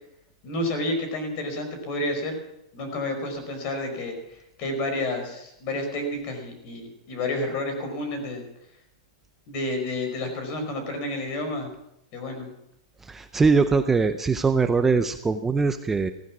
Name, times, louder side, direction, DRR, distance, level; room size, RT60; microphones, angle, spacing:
voice 1, 0.4-2.4 2.7-8.4 9.5-11.7 12.1-12.5, left 1 dB, 35° left, 6 dB, 5.0 m, -30 dB
voice 2, 13.0-16.1, right 4 dB, 10° right, 8 dB, 0.5 m, -22 dB
16.0 x 14.5 x 6.0 m, 0.81 s
supercardioid pair, 160°, 3 cm